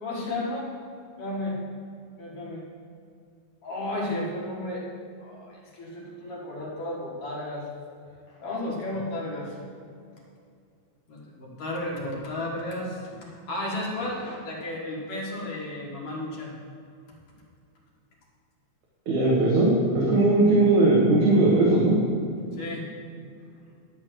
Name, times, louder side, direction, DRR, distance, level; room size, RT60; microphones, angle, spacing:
voice 1, 0.0-0.7 1.2-1.6 2.2-2.6 3.6-4.9 5.2-7.7 8.3-9.5 11.1-16.5 22.6-22.9, left 1 dB, 55° left, -3 dB, 2.5 m, -33 dB
voice 2, 19.1-22.0, right 2 dB, 90° right, -5 dB, 2.8 m, -19 dB
11.5 x 4.5 x 7.6 m, 2.4 s
omnidirectional pair, 3.3 m